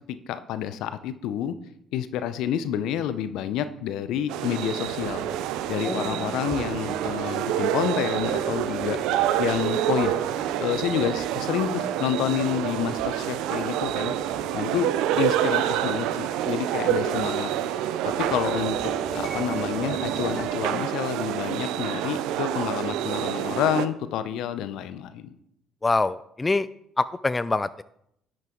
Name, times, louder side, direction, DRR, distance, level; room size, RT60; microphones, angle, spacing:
voice 1, 0.1-1.5 1.9-5.3 5.7-10.2 10.6-14.1 14.5-14.9 15.2-17.5 18.0-25.4, left 10 dB, 70° left, 12 dB, 0.7 m, -29 dB
sound 1, 4.3-23.9, right 11 dB, 75° right, 0.5 m, -27 dB
sound 2, 4.8-7.2 8.1-9.6 10.0-11.8 12.1-12.2 12.7-14.5 14.9-15.0 15.2-15.3 15.6-15.9 16.7-17.3 17.6-20.4, right 4 dB, 25° right, 1.9 m, -39 dB
voice 2, 5.8-6.4 25.8-26.7 27.0-27.8, left 3 dB, 25° left, 15 dB, 0.4 m, -25 dB
10.5 x 7.6 x 3.9 m, 0.74 s
hypercardioid pair, 55°, 0 cm